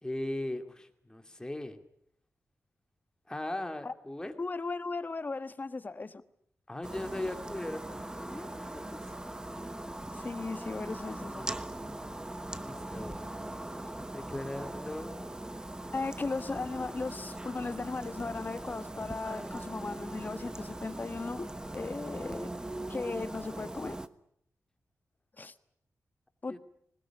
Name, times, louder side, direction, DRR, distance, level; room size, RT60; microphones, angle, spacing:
voice 1, 0.0-1.8 3.3-4.3 6.7-9.0 12.6-13.2 14.1-15.4 26.5-26.6, left 1 dB, 15° left, 7 dB, 2.5 m, -39 dB
voice 2, 4.4-6.2 10.1-11.5 15.9-22.5 22.9-24.0 25.4-25.5 26.4-26.6, left 3 dB, 35° left, 12 dB, 1.3 m, -37 dB
sound 1, 6.8-24.1, right 1 dB, 15° right, 1.1 m, -40 dB
21.0 x 20.0 x 10.0 m, 0.69 s
wide cardioid pair, 100°, 6 cm